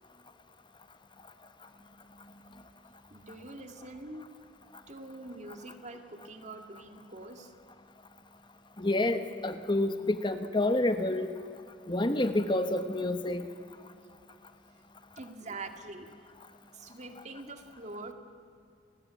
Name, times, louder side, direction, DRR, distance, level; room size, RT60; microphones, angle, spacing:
voice 1, 3.1-4.2 4.9-7.5 15.2-16.1 16.7-18.1, right 2 dB, 40° right, 6 dB, 2.1 m, -44 dB
voice 2, 8.8-11.3 11.9-13.4, left 2 dB, 25° left, 8 dB, 1.1 m, -28 dB
29.0 x 20.0 x 9.3 m, 2.3 s
head